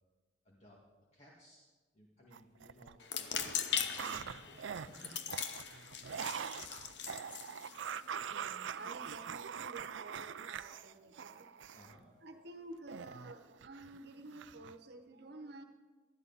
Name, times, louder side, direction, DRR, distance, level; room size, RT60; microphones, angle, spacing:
voice 1, 0.4-0.8 1.1-1.7 1.9-5.2 11.7-12.1, equal, 35° left, -4 dB, 2.0 m, -60 dB
sound 1, 2.3-3.0 3.3-12.0 12.9-14.0 14.3-14.8, right 7 dB, 80° right, 0.5 m, -43 dB
sound 2, 3.0-8.4, left 8 dB, 65° left, 0.9 m, -40 dB
voice 2, 8.3-11.7 12.1-15.6, right 2 dB, 60° right, 6 dB, 1.2 m, -51 dB
19.5 x 13.0 x 4.1 m, 1.3 s
head